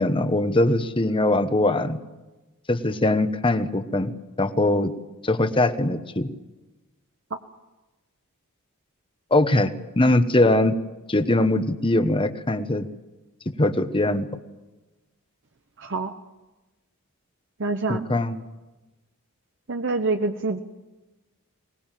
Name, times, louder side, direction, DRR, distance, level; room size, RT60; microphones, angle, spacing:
voice 1, 0.0-2.0 2.7-4.1 4.4-4.9 5.2-6.3 9.3-9.7 10.0-10.8 11.1-12.9 13.6-14.3 17.9-18.4, left 2 dB, 25° left, 10 dB, 1.1 m, -21 dB
voice 2, 15.8-16.1 17.6-18.0 19.7-20.6, right 3 dB, 60° right, 6 dB, 1.0 m, -26 dB
22.5 x 20.0 x 7.5 m, 1.1 s
head